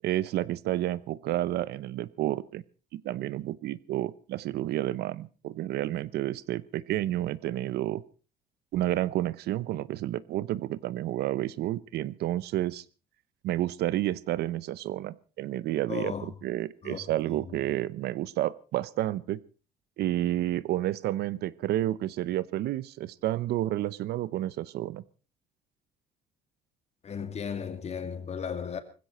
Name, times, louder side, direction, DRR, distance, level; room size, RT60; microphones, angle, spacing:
voice 1, 0.0-2.6 2.9-8.0 8.7-12.8 13.4-19.4 20.0-25.0, right 14 dB, 75° right, 0.8 m, -30 dB
voice 2, 15.9-16.3 16.8-17.6 27.0-28.8, left 7 dB, 40° left, 2.4 m, -36 dB
20.0 x 16.0 x 4.3 m
cardioid pair, 110°, 17 cm